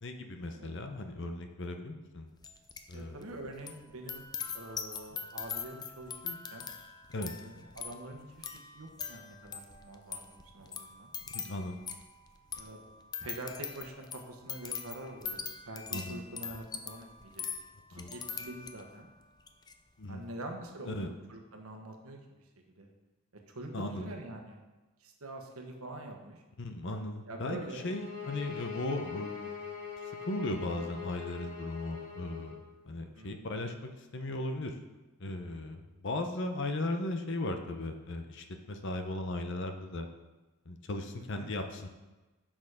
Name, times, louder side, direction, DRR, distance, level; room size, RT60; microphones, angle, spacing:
voice 1, 0.0-2.3 2.9-3.2 7.1-7.3 11.3-11.8 15.9-16.2 17.9-18.1 20.0-20.2 20.9-21.1 23.7-24.1 26.6-29.5 30.3-32.5 32.9-33.7 34.1-34.7 35.2-40.1 40.7-41.9, left 2 dB, 55° left, 6 dB, 0.8 m, -37 dB
sound 1, 2.4-3.0 3.2-19.0 19.4-19.7, left 6 dB, 20° left, 0.4 m, -42 dB
voice 2, 2.9-4.2 4.5-6.7 7.4-8.5 8.7-11.1 12.6-12.8 13.2-17.4 17.9-19.1 20.1-21.0 21.3-22.5 22.8-22.9 23.5-24.6 25.0-26.4 27.3-27.8 33.1-33.4 41.3-41.5, right 1 dB, 75° right, 3 dB, 1.2 m, -45 dB
sound 2, 27.7-32.6, left 7 dB, 85° left, 1.9 m, -42 dB
6.8 x 6.1 x 4.9 m, 1.1 s
head